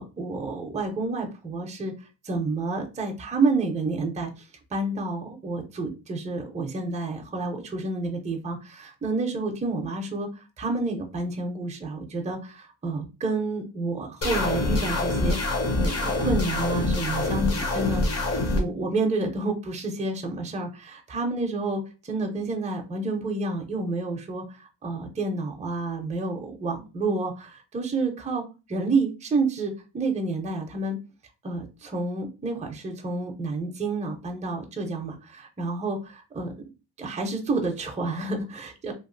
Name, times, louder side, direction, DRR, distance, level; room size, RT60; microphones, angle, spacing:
voice 1, 0.0-1.9 2.2-4.3 4.7-10.3 10.6-18.0 18.5-31.0 31.4-36.5 37.0-38.9, right 3 dB, 15° right, 2 dB, 0.4 m, -29 dB
sound 1, 14.2-18.6, left 2 dB, 35° left, 0.6 m, -25 dB
2.9 x 2.3 x 2.5 m, 0.30 s
wide cardioid pair, 140°, 42 cm